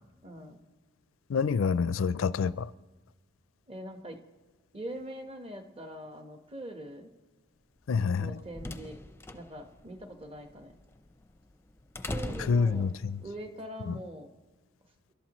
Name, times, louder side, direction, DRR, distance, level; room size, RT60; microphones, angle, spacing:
voice 1, 0.2-0.6 3.7-4.2 4.7-7.1 8.2-9.0 9.3-10.8 12.0-12.9 13.2-14.3, right 1 dB, 30° right, 1.2 m, -43 dB
voice 2, 1.3-2.7 7.9-8.4 12.5-13.2 13.9-14.0, left 5 dB, 75° left, 0.4 m, -27 dB
sound 1, 8.3-13.3, left 2 dB, 10° left, 0.6 m, -42 dB
29.5 x 12.0 x 3.1 m
head